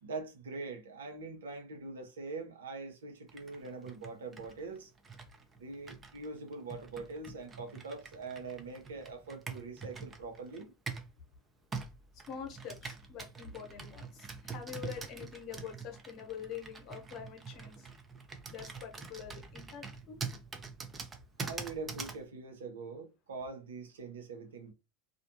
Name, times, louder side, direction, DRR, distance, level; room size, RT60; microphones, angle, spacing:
voice 1, 0.0-4.9 5.6-10.7 21.4-24.7, right 3 dB, 80° right, 0.7 m, -43 dB
Computer keyboard, 3.3-11.2 11.7-22.2, right 4 dB, 25° right, 0.6 m, -45 dB
voice 2, 12.3-17.9 18.5-20.2, left 8 dB, 50° left, 1.0 m, -45 dB
2.5 x 2.2 x 2.7 m
hypercardioid pair, 85°, 0 cm